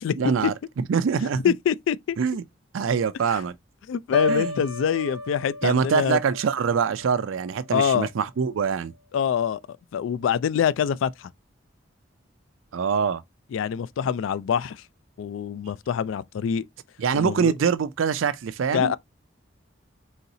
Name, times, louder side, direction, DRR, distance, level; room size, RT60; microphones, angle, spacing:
voice 1, 0.2-1.5 2.2-2.4 2.7-3.5 4.3-4.6 5.6-8.9 12.7-13.2 17.0-18.9, right 6 dB, 90° right, 0.4 m, -24 dB
voice 2, 1.4-2.2 3.3-3.4 3.9-6.2 7.7-8.1 9.1-9.6 9.9-11.3 13.5-14.8 15.2-16.6 17.1-17.5 18.7-18.9, left 8 dB, 80° left, 0.3 m, -25 dB
Piano, 4.1-8.1 8.5-8.8, left 3 dB, 65° left, 1.1 m, -33 dB
4.0 x 3.9 x 2.7 m
head